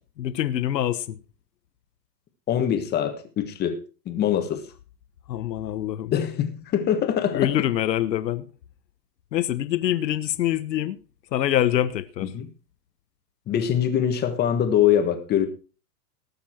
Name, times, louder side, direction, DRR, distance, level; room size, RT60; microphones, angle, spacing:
voice 1, 0.2-1.2 5.3-6.1 7.3-8.4 9.3-11.0 11.3-12.3, left 12 dB, 85° left, 1.3 m, -25 dB
voice 2, 2.5-4.7 6.1-7.5 12.3-12.5 13.5-15.5, left 9 dB, 20° left, 1.4 m, -23 dB
19.0 x 7.1 x 4.5 m
supercardioid pair, 155°, 49 cm